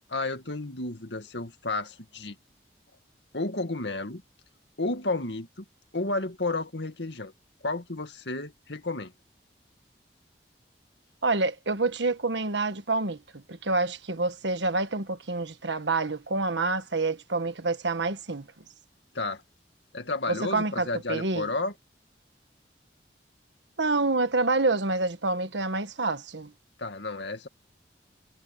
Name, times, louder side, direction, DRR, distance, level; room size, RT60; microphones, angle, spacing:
voice 1, 0.1-2.4 3.3-4.2 4.8-5.6 5.9-7.3 7.6-9.1 19.1-19.4 19.9-21.7 26.8-27.5, left 2 dB, 85° left, 2.1 m, -32 dB
voice 2, 11.2-18.5 20.3-21.5 23.8-26.5, right 3 dB, 90° right, 1.5 m, -27 dB
head